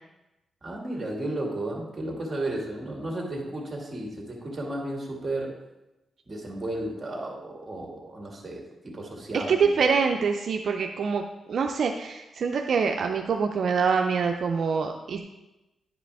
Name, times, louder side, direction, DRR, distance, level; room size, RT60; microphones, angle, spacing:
voice 1, 0.6-5.5 6.3-9.7, right 1 dB, 30° right, -1 dB, 2.1 m, -33 dB
voice 2, 9.3-11.2 11.5-15.2, right 5 dB, 65° right, 4 dB, 0.4 m, -25 dB
10.5 x 5.0 x 3.4 m, 1.0 s
cardioid pair, 90°, 0 cm